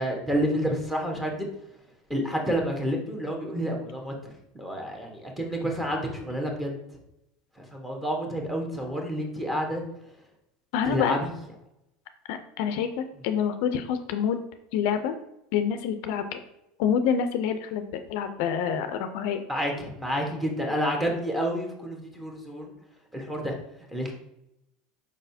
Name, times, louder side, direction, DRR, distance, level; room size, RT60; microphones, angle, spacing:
voice 1, 0.0-1.5 2.1-4.1 4.5-6.7 7.7-9.8 10.8-11.3 19.5-22.7 23.1-23.5 23.9-24.1, equal, 10° right, 0 dB, 1.2 m, -29 dB
voice 2, 10.7-11.2 12.3-14.4 14.7-15.1 15.5-16.4 16.8-19.4, left 8 dB, 70° left, 8 dB, 0.4 m, -27 dB
4.7 x 4.0 x 2.7 m, 0.84 s
supercardioid pair, 105°, 0 cm